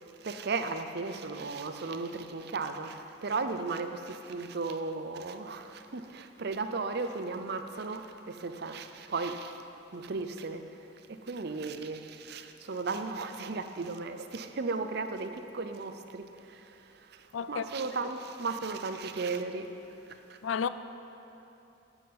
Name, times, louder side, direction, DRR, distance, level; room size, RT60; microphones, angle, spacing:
voice 1, 0.2-9.6 9.9-10.8 11.1-19.7 20.3-20.4, right 4 dB, 55° right, 0.6 m, -35 dB
voice 2, 17.3-17.6 20.4-20.7, left 7 dB, 80° left, 0.4 m, -31 dB
10.5 x 5.5 x 7.7 m
head